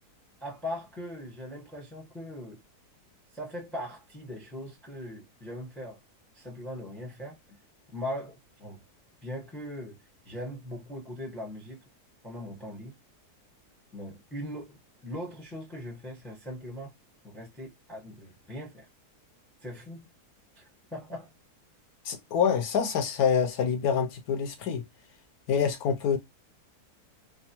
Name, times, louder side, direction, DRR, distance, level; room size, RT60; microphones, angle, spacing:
voice 1, 0.4-2.6 3.3-6.0 6.3-7.6 7.9-8.8 9.2-10.0 10.2-11.8 12.2-12.9 13.9-16.9 17.2-18.9 19.6-20.1 20.6-20.7 20.9-21.3, left 1 dB, ahead, 0.7 m, -40 dB
voice 2, 22.0-24.9 25.5-26.2, left 7 dB, 70° left, 1.0 m, -26 dB
3.4 x 2.0 x 2.8 m
omnidirectional pair, 1.7 m